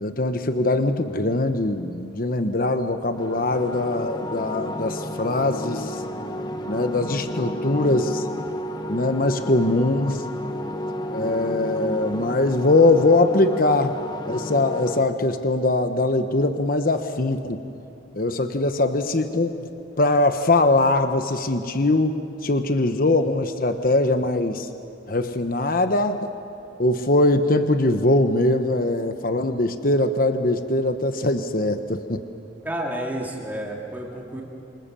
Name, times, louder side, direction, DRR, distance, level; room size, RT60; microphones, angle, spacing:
voice 1, 0.0-6.0 6.7-8.2 8.9-10.2 11.1-14.0 14.3-17.6 18.1-19.6 20.0-22.2 22.4-24.7 25.1-26.3 26.8-32.2, left 2 dB, 50° left, 8 dB, 1.1 m, -21 dB
sound 1, 3.1-15.0, equal, 25° left, 1.3 m, -31 dB
voice 2, 32.6-34.4, right 1 dB, 10° right, -2 dB, 3.4 m, -30 dB
27.5 x 25.5 x 7.0 m, 2.7 s
head